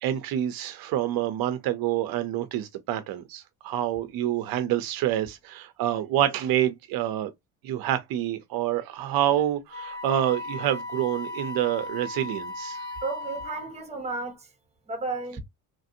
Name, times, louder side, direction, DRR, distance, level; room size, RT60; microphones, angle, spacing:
voice 1, 0.0-7.3 7.6-13.0, right 12 dB, 70° right, 0.6 m, -27 dB
Wind instrument woodwind instrument, 9.7-13.9, left 2 dB, 25° left, 1.4 m, -36 dB
voice 2, 13.0-14.5 14.9-15.4, right 3 dB, 15° right, 1.1 m, -33 dB
3.2 x 2.5 x 2.6 m
cardioid pair, 145°, 37 cm